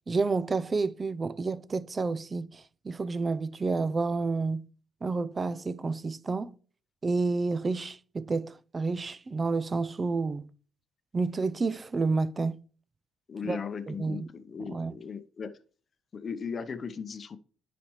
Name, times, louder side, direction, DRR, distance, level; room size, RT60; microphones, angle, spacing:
voice 1, 0.1-4.7 5.0-6.5 7.0-10.5 11.1-12.6 13.4-13.6 13.9-14.3 14.6-15.0, right 3 dB, 30° right, 0.5 m, -30 dB
voice 2, 13.3-15.5 16.1-17.4, left 6 dB, 45° left, 0.7 m, -37 dB
10.5 x 5.0 x 3.1 m
cardioid pair, 80°, 0 cm